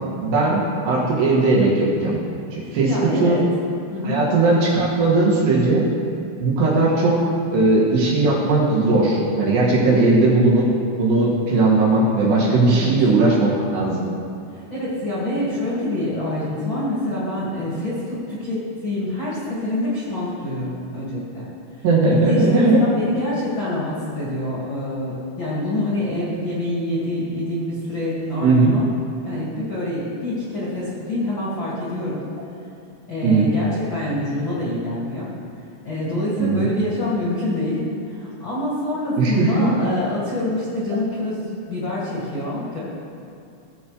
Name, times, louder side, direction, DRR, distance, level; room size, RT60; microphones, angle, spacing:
voice 1, 0.2-2.2 2.5-3.4 4.0-5.9 6.4-7.2 7.5-10.7 11.0-14.1 21.8-22.8 28.4-28.7 33.2-33.5 36.4-36.6 39.2-39.7, right 3 dB, 90° right, -5 dB, 4.1 m, -18 dB
voice 2, 2.6-3.4 3.9-4.3 12.7-12.9 14.5-21.4 21.8-21.9 22.1-22.7 23.0-28.9 29.2-32.2 33.1-35.3 35.8-42.8, left 1 dB, 40° left, -8 dB, 1.8 m, -26 dB
17.5 x 7.2 x 3.2 m, 2.5 s
omnidirectional pair, 4.7 m